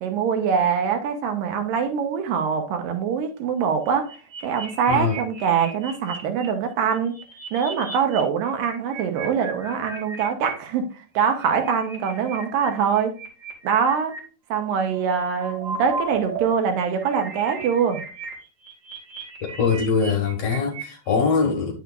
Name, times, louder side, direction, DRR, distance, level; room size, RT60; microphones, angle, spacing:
voice 1, 0.0-4.1 4.4-7.2 7.5-13.2 13.6-14.2 14.5-18.0, right 7 dB, 90° right, 2.8 m, -23 dB
sound 1, 3.9-6.5 7.0-8.2 8.5-10.5 11.2-14.2 15.0-16.5 16.7-21.1, right 4 dB, 65° right, 3.5 m, -35 dB
voice 2, 4.9-5.2 19.4-21.7, left 5 dB, 60° left, 2.2 m, -22 dB
9.2 x 6.5 x 2.5 m
omnidirectional pair, 3.8 m